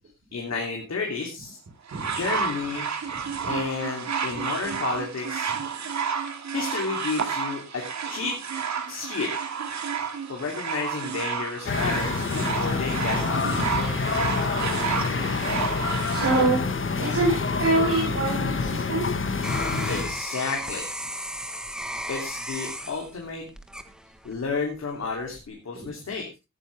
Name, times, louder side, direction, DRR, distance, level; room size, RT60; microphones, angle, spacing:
voice 1, 0.3-1.6 2.0-2.9 3.5-5.5 6.5-8.4 8.9-9.3 10.3-14.0 19.9-20.8 22.1-23.4 24.2-26.3, left 4 dB, 60° left, 0 dB, 3.1 m, -31 dB
sound 1, 1.9-16.5 17.3-17.4, right 7 dB, 70° right, 2.1 m, -31 dB
sound 2, 11.7-20.2, left 4 dB, 45° left, 1.4 m, -27 dB
voice 2, 13.4-13.8 14.9-15.0 15.5-15.6 15.9-16.6 17.0-19.3 25.8-25.9, right 2 dB, 50° right, -1 dB, 4.9 m, -26 dB
sound 3, 18.6-24.5 25.0-25.5, equal, ahead, 1.2 m, -35 dB
18.0 x 9.8 x 3.4 m, 0.27 s
wide cardioid pair, 170°, 29 cm